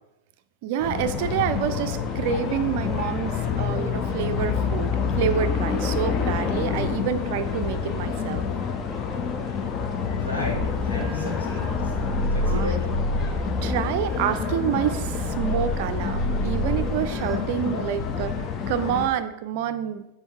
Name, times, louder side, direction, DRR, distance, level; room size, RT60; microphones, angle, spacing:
voice 1, 0.6-8.5 12.4-12.7 13.6-18.3 18.7-20.0, right 9 dB, 50° right, 10 dB, 0.4 m, -28 dB
sound 1, 0.8-19.1, left 6 dB, 30° left, 0.6 m, -28 dB
voice 2, 10.2-11.9 12.4-12.8, left 1 dB, 80° left, -4 dB, 2.0 m, -33 dB
sound 2, 10.5-17.4, right 1 dB, 5° right, 0.8 m, -29 dB
6.9 x 4.0 x 3.5 m, 0.88 s
figure-of-eight pair, 90°, 0 cm